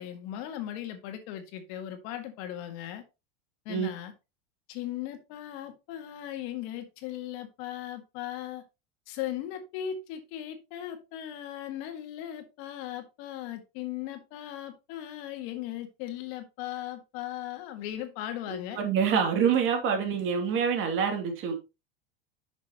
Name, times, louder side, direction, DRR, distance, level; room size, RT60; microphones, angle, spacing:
voice 1, 0.0-3.0 3.7-4.1 4.7-8.6 9.1-18.8, left 11 dB, 60° left, 1.9 m, -38 dB
voice 2, 18.5-21.5, right 7 dB, 45° right, 2.7 m, -26 dB
10.5 x 6.4 x 3.0 m
supercardioid pair, 125°, 29 cm